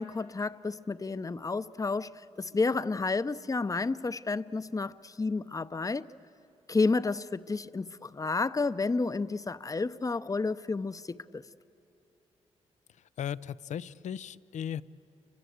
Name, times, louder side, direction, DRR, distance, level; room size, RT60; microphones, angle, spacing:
voice 1, 0.0-2.1 2.4-6.1 6.7-11.4, left 3 dB, 30° left, 0.7 m, -31 dB
voice 2, 12.9-14.8, left 9 dB, 80° left, 0.6 m, -37 dB
30.0 x 24.5 x 8.1 m
cardioid pair, 60°, 12 cm